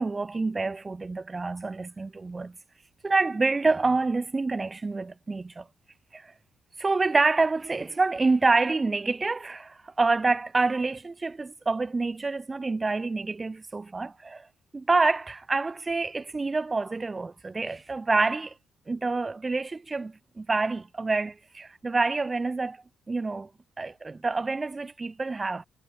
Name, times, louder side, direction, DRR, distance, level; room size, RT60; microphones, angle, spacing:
voice 1, 0.0-2.6 3.0-5.7 6.1-6.3 6.8-14.5 14.7-18.5 18.9-22.8 23.1-23.5 23.8-25.6, right 3 dB, 15° right, 0.7 m, -27 dB
cardioid pair, 170°, 0 cm